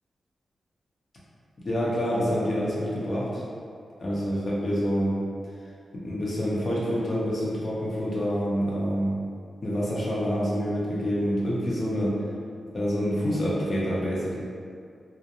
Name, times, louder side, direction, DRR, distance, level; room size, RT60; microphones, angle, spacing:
voice 1, 1.6-3.4 4.0-5.2 6.0-9.2 9.6-12.2 12.7-14.3, equal, 50° left, -7 dB, 0.8 m, -27 dB
2.4 x 2.1 x 2.8 m, 2.3 s
cardioid pair, 55°, 0 cm